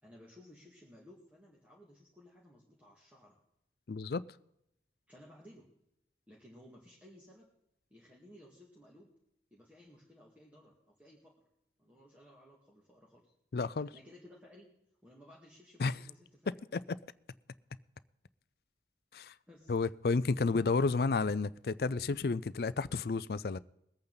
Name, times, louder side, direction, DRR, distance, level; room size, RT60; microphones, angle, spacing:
voice 1, 0.0-3.4 5.1-5.7 6.3-7.5 7.9-9.1 9.5-11.4 11.8-13.3 13.9-14.7 15.0-16.5 19.5-19.7, left 1 dB, 10° right, 2.0 m, -57 dB
voice 2, 3.9-4.3 13.5-13.9 15.8-16.0 16.5-17.0 19.1-19.3 19.7-23.6, left 4 dB, 60° left, 0.4 m, -31 dB
21.5 x 8.8 x 4.0 m
head